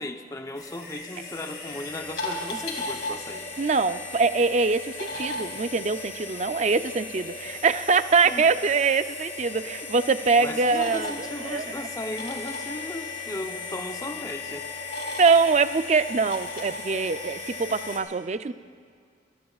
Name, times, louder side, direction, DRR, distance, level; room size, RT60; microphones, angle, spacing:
voice 1, 0.0-3.5 8.2-8.5 10.4-14.7, left 1 dB, 20° left, 5 dB, 0.7 m, -36 dB
sound 1, 0.6-18.0, left 3 dB, 60° left, 2.7 m, -36 dB
voice 2, 3.6-11.6 15.2-18.5, right 4 dB, 40° right, 11 dB, 0.4 m, -23 dB
27.5 x 18.0 x 2.4 m, 2.1 s
head